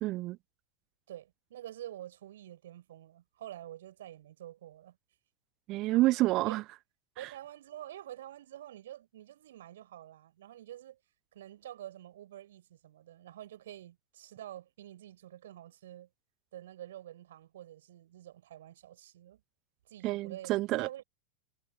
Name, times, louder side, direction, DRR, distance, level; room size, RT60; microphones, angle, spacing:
voice 1, 0.0-0.4 5.7-6.6 20.0-20.9, right 18 dB, 40° right, 0.5 m, -28 dB
voice 2, 1.1-5.0 6.5-6.6 7.2-11.0 11.3-16.1 16.5-19.4 19.9-21.0, right 12 dB, 60° right, 5.2 m, -48 dB
figure-of-eight pair, 90°, 0 cm